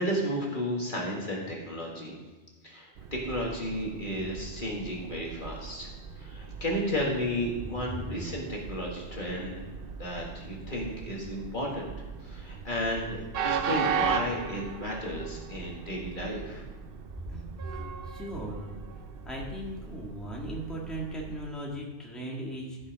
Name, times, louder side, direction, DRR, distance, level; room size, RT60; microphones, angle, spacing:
voice 1, 0.0-2.2 2.6-9.7 10.0-11.9 12.2-13.2 13.4-16.6, equal, 45° left, -2 dB, 1.8 m, -33 dB
Train, 3.0-21.5, right 6 dB, 60° right, 0.8 m, -37 dB
voice 2, 17.3-18.7 19.2-22.8, right 1 dB, ahead, -3 dB, 1.7 m, -38 dB
14.0 x 5.6 x 5.2 m, 1.2 s
omnidirectional pair, 1.2 m